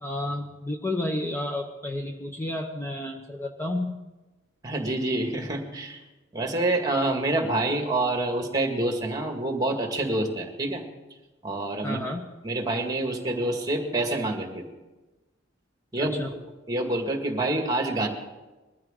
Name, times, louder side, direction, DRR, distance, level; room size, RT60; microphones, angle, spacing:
voice 1, 0.0-4.0 11.8-12.3 16.0-16.3, left 1 dB, 15° left, 3 dB, 0.8 m, -31 dB
voice 2, 4.6-6.0 6.3-10.8 11.4-12.0 12.4-14.6 15.9-16.4 16.7-18.1, right 2 dB, 20° right, 3 dB, 2.0 m, -27 dB
21.5 x 14.0 x 3.8 m, 1.1 s
head